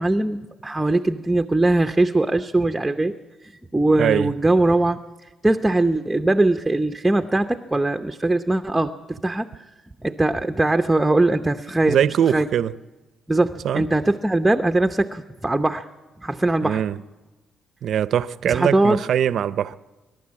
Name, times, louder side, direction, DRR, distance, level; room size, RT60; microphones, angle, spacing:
voice 1, 0.0-3.1 3.7-5.0 5.4-9.5 10.0-12.5 13.3-15.8 16.2-16.8 18.4-19.0, right 2 dB, 10° right, 0.7 m, -21 dB
voice 2, 4.0-4.3 11.9-12.7 13.6-13.8 16.6-17.0 17.8-19.7, right 9 dB, 65° right, 0.6 m, -22 dB
25.0 x 12.0 x 8.6 m
cardioid pair, 90°, 0 cm